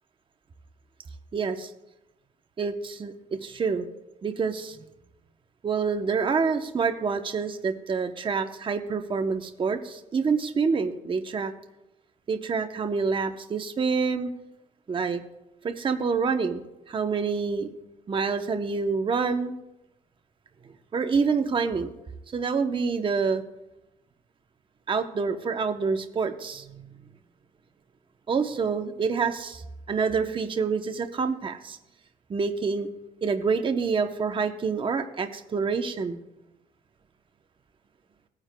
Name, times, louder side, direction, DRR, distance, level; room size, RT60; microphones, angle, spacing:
voice 1, 1.3-1.7 2.6-3.9 4.2-4.8 5.6-11.5 12.3-14.3 14.9-15.2 15.6-17.7 18.1-19.5 20.6-21.9 22.3-23.4 24.9-26.9 28.3-31.8 32.3-32.9 33.2-36.2, right 5 dB, 35° right, 6 dB, 0.8 m, -27 dB
18.0 x 9.7 x 2.2 m, 0.93 s
cardioid pair, 95°, 15 cm